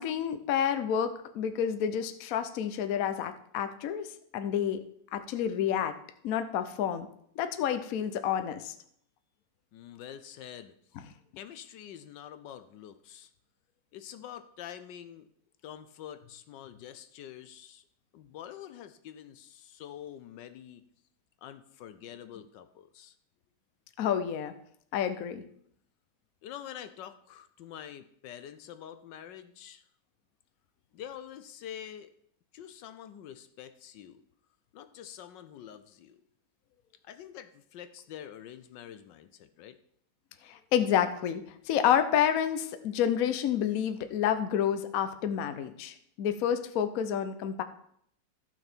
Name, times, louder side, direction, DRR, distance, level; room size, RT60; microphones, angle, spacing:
voice 1, 0.0-4.8 5.1-6.0 6.2-7.1 7.4-8.7 24.0-24.5 24.9-25.4 40.4-47.6, left 9 dB, 60° left, 10 dB, 1.0 m, -29 dB
voice 2, 9.7-10.7 11.4-13.3 13.9-15.3 15.6-17.8 18.1-20.8 21.4-23.1 26.4-29.8 30.9-32.1 32.5-34.2 34.7-36.2 37.0-39.8, left 10 dB, 75° left, 10 dB, 1.3 m, -46 dB
14.5 x 6.1 x 4.4 m, 0.68 s
omnidirectional pair, 2.0 m